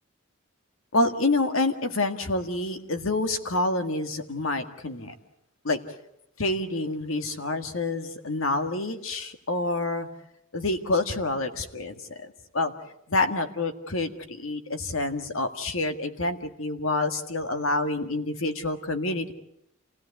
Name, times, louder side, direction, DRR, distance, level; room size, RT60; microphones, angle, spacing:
voice 1, 0.9-5.1 5.6-5.8 6.4-10.1 10.5-12.7 13.1-19.3, left 2 dB, 75° left, 7 dB, 1.8 m, -27 dB
27.5 x 17.0 x 8.4 m, 0.80 s
head